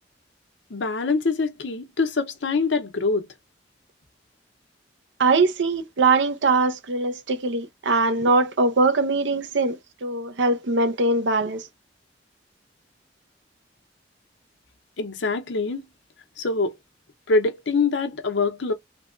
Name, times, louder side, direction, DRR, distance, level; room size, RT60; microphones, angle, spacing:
voice 1, 0.7-3.3 15.0-15.9 16.4-16.8 17.3-18.7, left 3 dB, 80° left, 0.8 m, -24 dB
voice 2, 5.2-11.6, right 3 dB, 80° right, 0.7 m, -22 dB
3.3 x 2.2 x 2.4 m
head